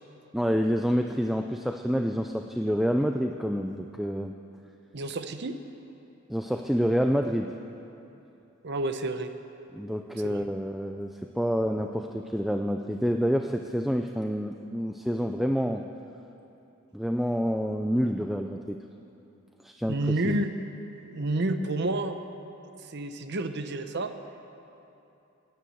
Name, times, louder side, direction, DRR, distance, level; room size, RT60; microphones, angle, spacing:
voice 1, 0.3-4.3 6.3-7.5 9.7-15.9 16.9-18.8 19.6-20.4, equal, ahead, 4 dB, 0.4 m, -28 dB
voice 2, 4.9-5.6 8.6-9.3 10.2-10.5 19.9-20.5 21.1-22.1 22.9-24.1, right 2 dB, 55° right, 8 dB, 0.8 m, -29 dB
16.5 x 10.5 x 7.8 m, 2.8 s
head